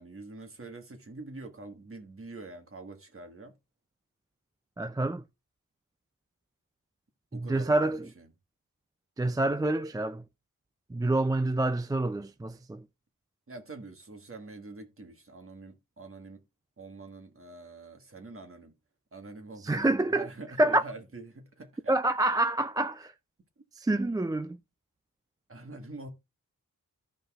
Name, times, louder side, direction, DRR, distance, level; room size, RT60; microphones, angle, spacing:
voice 1, 0.0-3.5 7.3-8.3 13.5-16.4 16.8-18.7 19.1-21.9 25.5-26.1, right 2 dB, 40° right, 1.5 m, -45 dB
voice 2, 4.8-5.2 7.3-8.1 9.2-10.2 10.9-12.8 19.6-20.3 20.6-20.8 21.9-23.1 23.8-24.6, right 2 dB, 10° right, 0.3 m, -27 dB
15.0 x 5.2 x 2.4 m
wide cardioid pair, 85°, 34 cm